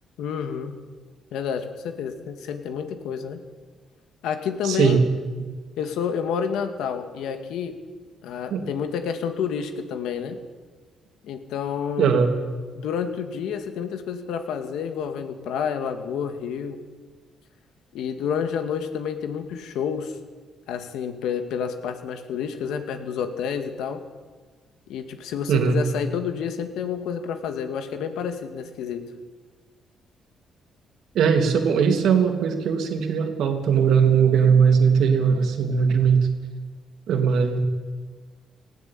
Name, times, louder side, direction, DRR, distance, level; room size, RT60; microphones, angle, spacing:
voice 1, 0.2-0.8 1.3-3.4 4.2-5.0 5.8-7.7 8.2-10.4 11.2-12.1 12.8-16.8 17.9-20.2 20.7-24.0 24.9-29.1, left 7 dB, 85° left, 7 dB, 2.2 m, -29 dB
voice 2, 4.6-5.0 5.4-5.5 8.5-8.6 12.0-12.3 25.5-25.8 31.1-36.3 37.1-37.6, right 6 dB, 75° right, 5 dB, 3.0 m, -19 dB
19.0 x 16.5 x 8.8 m, 1.4 s
cardioid pair, 90°, 0 cm